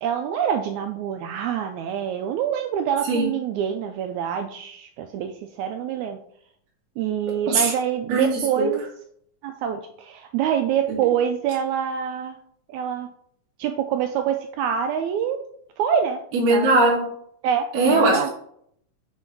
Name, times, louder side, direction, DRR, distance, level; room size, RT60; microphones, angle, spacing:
voice 1, 0.0-6.2 7.0-8.8 9.4-12.4 12.7-13.1 13.6-15.4 15.8-16.2 16.5-16.7 17.4-18.3, right 8 dB, 80° right, 6 dB, 1.7 m, -25 dB
voice 2, 16.3-17.1 17.7-18.3, right 2 dB, 60° right, -4 dB, 2.7 m, -19 dB
7.7 x 3.7 x 4.5 m, 0.67 s
omnidirectional pair, 3.8 m